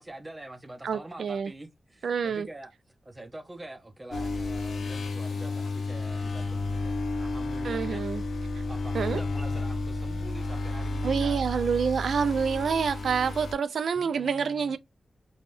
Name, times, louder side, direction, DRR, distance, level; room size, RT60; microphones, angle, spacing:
voice 1, 0.0-2.7 3.0-8.0 8.7-11.7 13.9-14.8, right 1 dB, 20° right, 0.5 m, -45 dB
voice 2, 0.8-1.5 2.0-2.5 7.6-8.2 8.9-9.2 11.0-14.8, right 6 dB, 85° right, 0.3 m, -27 dB
sound 1, 4.1-13.5, left 2 dB, 90° left, 0.6 m, -32 dB
3.4 x 2.2 x 2.4 m
wide cardioid pair, 170°, 0 cm